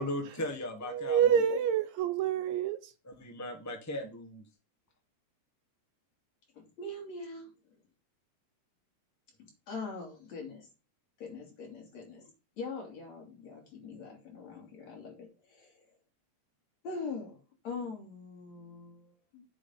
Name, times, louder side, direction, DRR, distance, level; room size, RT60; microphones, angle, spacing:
voice 1, 0.0-1.2 3.0-4.5, left 1 dB, 25° left, 0.3 m, -37 dB
voice 2, 0.9-2.9, right 8 dB, 75° right, 2.0 m, -27 dB
voice 3, 6.5-7.5 9.4-10.7 11.2-12.3 12.6-15.8 16.8-19.5, left 3 dB, 60° left, 4.2 m, -43 dB
8.7 x 7.1 x 3.9 m
omnidirectional pair, 3.4 m